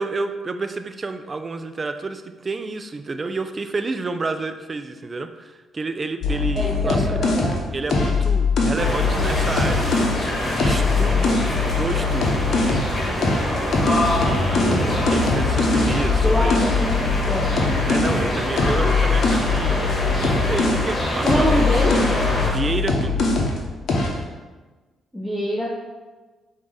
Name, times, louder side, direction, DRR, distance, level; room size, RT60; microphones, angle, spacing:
voice 1, 0.0-7.2 7.7-10.1 10.5-12.9 14.2-16.6 17.9-19.9 20.2-21.8 22.5-23.2, right 3 dB, 35° right, 8 dB, 0.4 m, -30 dB
sound 1, 6.2-10.2 10.6-12.9 13.2-20.9 21.2-23.6 23.9-24.2, left 4 dB, 65° left, 0.8 m, -22 dB
voice 2, 6.5-7.6 14.6-14.9 16.2-17.5 21.2-22.0 25.1-25.9, equal, ahead, -5 dB, 0.8 m, -25 dB
sound 2, 8.8-22.5, left 1 dB, 35° left, 1.4 m, -25 dB
4.5 x 2.7 x 3.8 m, 1.3 s
supercardioid pair, 60°, 0 cm